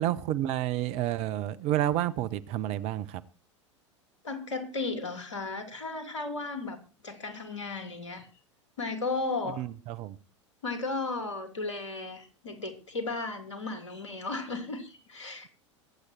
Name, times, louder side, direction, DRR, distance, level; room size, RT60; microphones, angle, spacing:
voice 1, 0.0-3.2 9.6-10.2, right 13 dB, 45° right, 0.9 m, -30 dB
voice 2, 4.2-6.8 7.0-8.3 8.8-9.6 10.6-15.5, left 3 dB, 75° left, 3.0 m, -35 dB
23.0 x 8.3 x 4.4 m
figure-of-eight pair, 85°, 16 cm